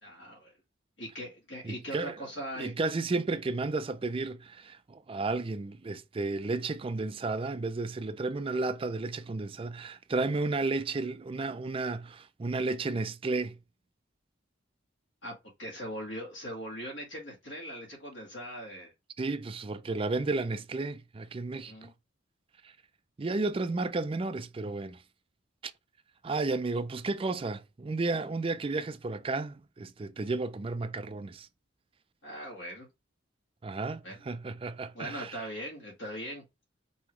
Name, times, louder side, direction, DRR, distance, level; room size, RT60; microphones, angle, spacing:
voice 1, 0.0-0.5 1.0-2.7 15.2-18.9 21.7-21.9 32.2-32.9 34.0-34.2 34.9-36.4, equal, 80° left, 1.7 m, -40 dB
voice 2, 1.6-2.2 2.6-13.6 19.2-21.9 23.2-25.0 25.6-25.7 26.2-31.5 33.6-35.4, right 3 dB, 30° right, 0.4 m, -33 dB
5.5 x 2.9 x 3.1 m
head